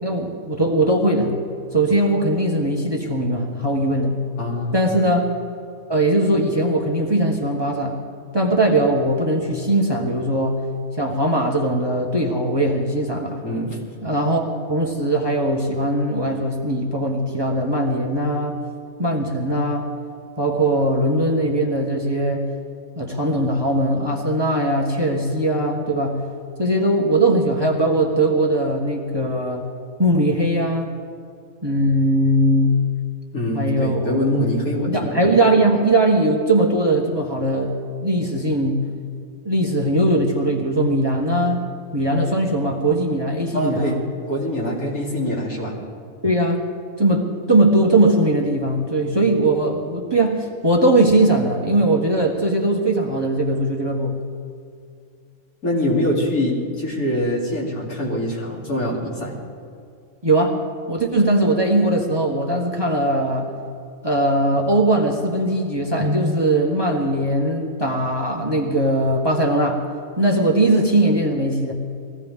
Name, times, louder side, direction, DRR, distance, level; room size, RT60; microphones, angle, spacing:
voice 1, 0.0-1.4 1.7-4.2 4.7-5.3 5.9-8.0 8.3-10.6 11.0-13.4 14.0-18.6 19.0-19.9 20.4-22.4 22.9-26.2 26.6-29.6 30.0-30.9 31.6-32.8 33.5-34.4 34.9-37.7 38.0-38.8 39.4-41.6 41.9-44.0 46.2-46.6 47.0-54.2 60.2-60.6 60.9-63.5 64.0-69.8 70.2-71.7, right 1 dB, 20° right, 0 dB, 1.3 m, -20 dB
voice 2, 4.4-4.7 13.4-13.8 33.3-35.2 43.5-44.0 44.3-45.8 55.6-59.4, left 1 dB, 85° left, -5 dB, 3.6 m, -24 dB
21.0 x 16.0 x 3.7 m, 2.4 s
omnidirectional pair, 1.5 m